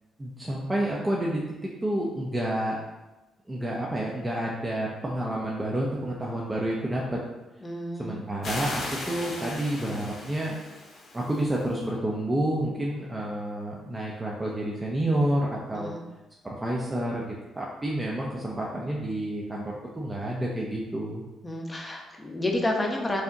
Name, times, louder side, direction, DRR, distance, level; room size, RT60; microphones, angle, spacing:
voice 1, 0.2-1.4 1.8-2.8 3.5-7.2 8.0-10.6 11.1-15.9 16.4-21.2, right 1 dB, 15° right, -3 dB, 0.6 m, -29 dB
voice 2, 7.6-8.2 15.7-16.0 21.4-23.2, left 1 dB, 20° left, 1 dB, 0.7 m, -30 dB
sound 1, 8.4-11.7, left 2 dB, 55° left, 0.9 m, -37 dB
4.7 x 2.8 x 2.6 m, 1.1 s
cardioid pair, 90°, 0 cm